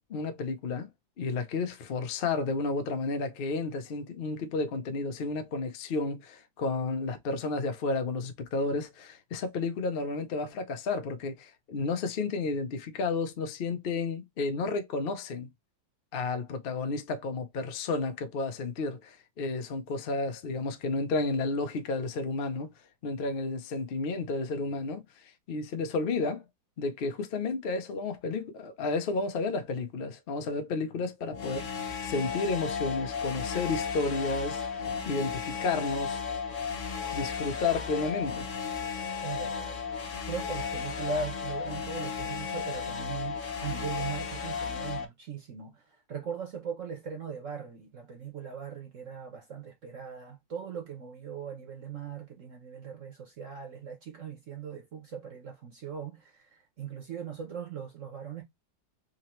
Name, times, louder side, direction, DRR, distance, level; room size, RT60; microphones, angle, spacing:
voice 1, 0.1-0.9 1.2-15.5 16.1-22.7 23.0-26.4 26.8-36.2 37.1-38.5, left 3 dB, 85° left, 0.5 m, -32 dB
sound 1, 31.3-45.0, left 6 dB, 55° left, 1.0 m, -34 dB
voice 2, 39.2-39.8 40.3-58.4, right 6 dB, 55° right, 1.0 m, -39 dB
3.8 x 2.9 x 2.9 m
omnidirectional pair, 2.0 m